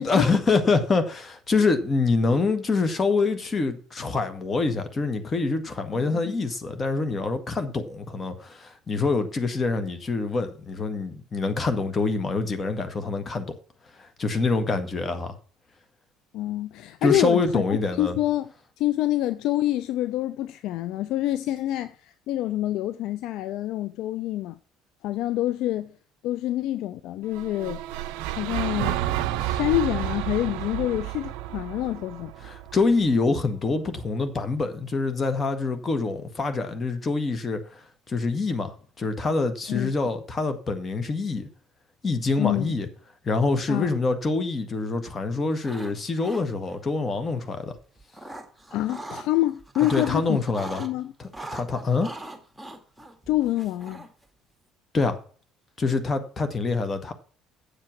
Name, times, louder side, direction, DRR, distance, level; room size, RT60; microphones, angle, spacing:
voice 1, 0.0-13.5 14.0-15.3 17.0-18.2 32.4-41.5 42.0-42.9 43.2-47.7 49.9-50.8 51.2-52.1 54.9-55.2 55.8-57.1, left 3 dB, 30° left, 1.9 m, -25 dB
voice 2, 5.9-6.4 16.3-18.5 18.8-24.6 25.0-25.9 26.2-27.8 28.4-29.0 29.4-32.3 39.7-39.9 42.4-42.7 43.7-43.9 48.7-50.4 50.8-51.1 53.3-54.0, left 14 dB, 60° left, 0.4 m, -27 dB
sound 1, 27.3-33.5, right 13 dB, 60° right, 0.5 m, -31 dB
sound 2, 45.5-45.9 46.2-46.8 47.8-49.3 49.6-50.9 51.3-54.2, right 2 dB, ahead, 2.2 m, -40 dB
8.9 x 7.6 x 6.0 m
figure-of-eight pair, 55°, 0 cm